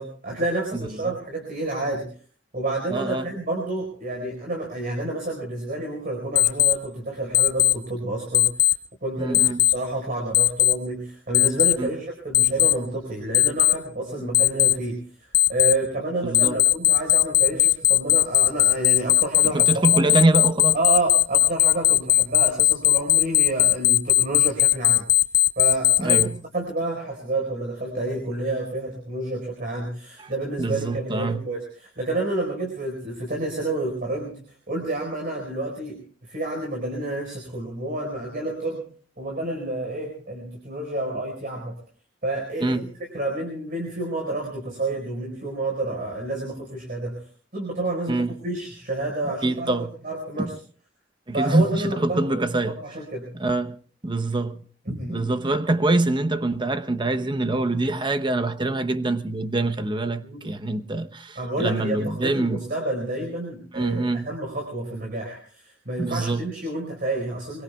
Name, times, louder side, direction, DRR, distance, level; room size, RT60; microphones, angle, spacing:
voice 1, 0.0-2.1 2.5-8.7 9.0-20.0 20.7-25.1 25.6-26.2 26.5-38.8 39.2-41.8 42.2-42.9 43.1-50.5 51.3-53.3 54.9-55.3 60.2-60.4 61.4-67.6, right 2 dB, 50° right, 4.6 m, -29 dB
voice 2, 0.8-1.1 2.9-3.3 9.2-9.6 11.8-11.9 14.2-14.3 16.2-16.6 19.5-20.8 26.0-26.4 30.2-30.3 30.6-31.4 42.6-42.8 48.1-48.4 49.4-49.9 50.4-50.5 51.3-52.8 53.3-53.8 54.0-54.6 55.1-62.6 63.7-64.3 66.0-66.5, right 2 dB, 25° right, 0.9 m, -24 dB
Alarm, 6.4-6.7 7.3-7.7 8.3-8.7 9.3-9.7 10.3-10.7 11.3-11.7 12.3-12.7 13.3-13.7 14.3-14.7 15.3-15.7 16.3-26.2, left 13 dB, 85° left, 0.9 m, -17 dB
24.5 x 23.0 x 2.3 m
head